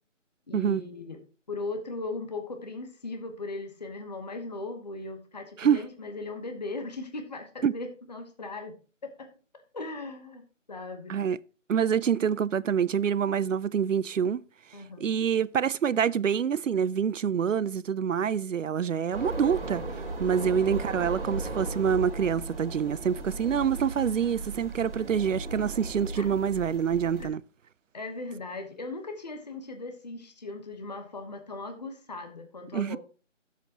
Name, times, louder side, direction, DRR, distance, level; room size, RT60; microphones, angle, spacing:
voice 1, 0.5-1.2 1.5-8.7 9.0-9.3 9.7-10.4 10.7-11.1 14.7-15.1 20.4-20.6 26.1-26.3 27.2-27.3 27.9-33.0, left 3 dB, 35° left, 1.1 m, -38 dB
voice 2, 11.7-14.4 15.0-27.4 32.7-33.0, right 8 dB, 75° right, 0.5 m, -26 dB
sound 1, 19.1-27.3, right 2 dB, 45° right, 3.4 m, -36 dB
14.0 x 7.5 x 2.9 m
figure-of-eight pair, 165°, 38 cm